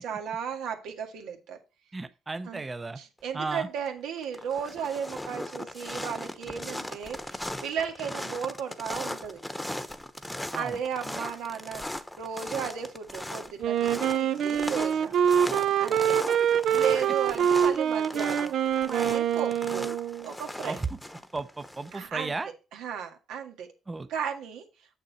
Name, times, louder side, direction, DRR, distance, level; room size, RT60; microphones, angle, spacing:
voice 1, 0.0-1.6 2.5-2.6 3.0-9.4 10.5-11.8 12.2-15.1 15.8-16.2 16.7-18.6 18.8-19.9 20.2-20.8 21.9-22.3 22.7-23.7 24.1-24.6, right 7 dB, 90° right, 1.9 m, -35 dB
voice 2, 1.9-3.0 3.3-3.7 10.5-10.8 11.1-11.3 16.1-16.5 20.6-20.9 21.3-22.5 23.9-24.1, right 3 dB, 25° right, 0.6 m, -35 dB
sound 1, 3.5-3.9 4.2-22.1, left 1 dB, 5° left, 0.9 m, -38 dB
Wind instrument woodwind instrument, 13.6-20.3, right 9 dB, 70° right, 0.5 m, -25 dB
7.6 x 6.8 x 4.2 m
cardioid pair, 90°, 0 cm